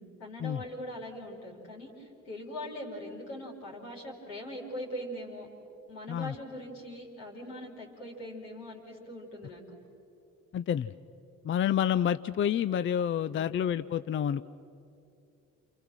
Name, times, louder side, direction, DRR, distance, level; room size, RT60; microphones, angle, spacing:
voice 1, 0.0-5.5 5.9-9.6 13.3-13.6, left 1 dB, 75° left, -2 dB, 4.2 m, -41 dB
voice 2, 10.5-10.9 11.4-14.4, left 9 dB, 30° left, 14 dB, 0.5 m, -28 dB
29.0 x 28.5 x 6.2 m, 2.6 s
figure-of-eight pair, 45°, 39 cm